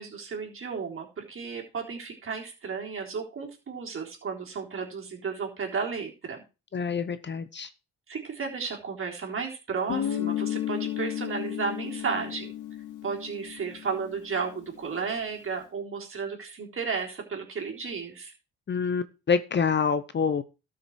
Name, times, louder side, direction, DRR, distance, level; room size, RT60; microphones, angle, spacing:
voice 1, 0.0-6.4 8.1-12.5 13.0-18.3, right 5 dB, 45° right, 1 dB, 3.7 m, -33 dB
voice 2, 6.7-7.7 18.7-20.4, left 6 dB, 35° left, 12 dB, 0.9 m, -26 dB
Guitar, 9.9-14.5, left 11 dB, 85° left, 2.4 m, -33 dB
12.5 x 6.2 x 4.7 m, 0.30 s
cardioid pair, 90°, 30 cm